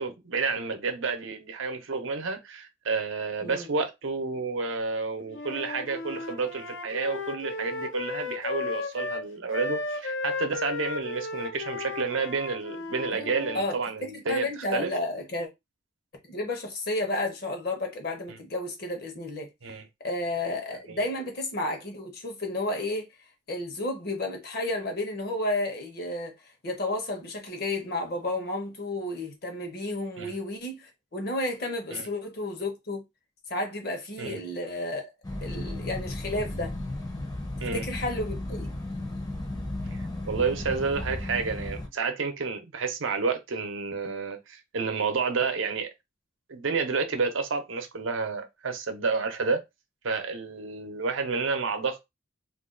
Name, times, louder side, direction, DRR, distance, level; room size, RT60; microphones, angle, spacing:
voice 1, 0.0-14.9 19.6-19.9 20.9-21.0 30.2-30.4 31.9-32.1 34.2-34.4 37.6-37.9 39.9-45.9 46.5-49.6 50.0-52.1, right 4 dB, 85° right, 0.7 m, -30 dB
Wind instrument woodwind instrument, 5.3-13.6, left 3 dB, 80° left, 0.5 m, -35 dB
voice 2, 14.0-15.5 16.3-19.5 20.0-23.1 23.5-26.3 26.6-33.0 33.5-35.1 35.4-36.7 37.7-38.8, left 1 dB, 50° left, 0.9 m, -32 dB
sound 1, 35.2-41.9, left 1 dB, 20° left, 0.6 m, -34 dB
2.5 x 2.3 x 3.7 m
head